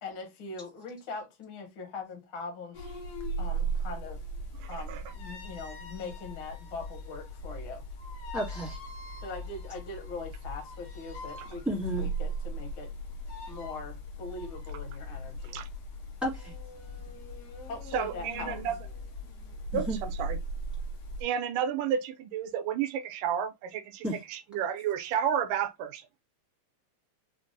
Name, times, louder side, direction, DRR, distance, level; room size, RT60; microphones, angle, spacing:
voice 1, 0.0-2.9 3.4-4.2 4.7-7.8 9.2-12.9 13.5-15.6 17.6-18.5, left 3 dB, 65° left, 1.3 m, -41 dB
sound 1, 2.7-21.2, right 2 dB, 90° left, 1.4 m, -38 dB
voice 2, 8.3-8.8 11.6-12.1 16.2-16.5 19.7-20.0 24.0-24.2, right 1 dB, ahead, 0.6 m, -32 dB
voice 3, 17.9-18.8 19.7-19.9 20.2-20.4 21.2-24.0 24.3-26.1, right 8 dB, 75° right, 2.1 m, -31 dB
5.8 x 2.1 x 2.5 m
omnidirectional pair, 4.1 m